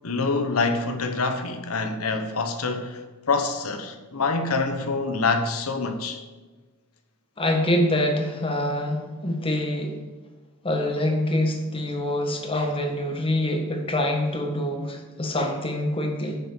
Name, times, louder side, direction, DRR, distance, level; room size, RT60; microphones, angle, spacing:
voice 1, 0.0-3.0 3.3-6.2, left 3 dB, 75° left, 1.1 m, -26 dB
voice 2, 7.4-10.0 10.6-16.4, left 1 dB, 25° left, 1.5 m, -25 dB
9.7 x 7.1 x 5.2 m
head